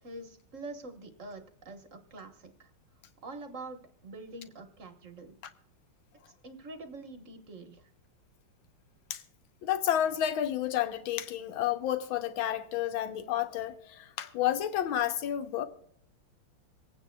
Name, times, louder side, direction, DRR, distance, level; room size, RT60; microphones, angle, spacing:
voice 1, 0.0-2.7 3.2-5.3 6.4-7.8, right 2 dB, 40° right, 1.4 m, -45 dB
voice 2, 9.6-15.7, left 11 dB, 70° left, 1.6 m, -30 dB
26.5 x 9.1 x 2.3 m
omnidirectional pair, 2.4 m